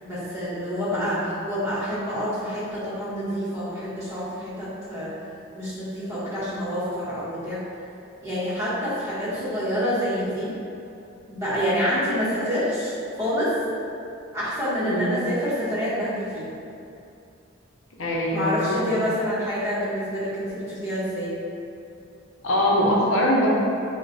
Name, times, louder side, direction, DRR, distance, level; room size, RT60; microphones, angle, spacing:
voice 1, 0.0-5.1 5.5-7.6 8.2-10.5 11.3-13.6 14.3-16.5 18.3-21.3, equal, 15° right, -12 dB, 1.0 m, -27 dB
voice 2, 0.9-1.2 14.8-15.2 18.0-19.0 22.4-23.5, left 1 dB, 85° left, -4 dB, 0.6 m, -23 dB
3.1 x 2.2 x 3.8 m, 2.6 s
head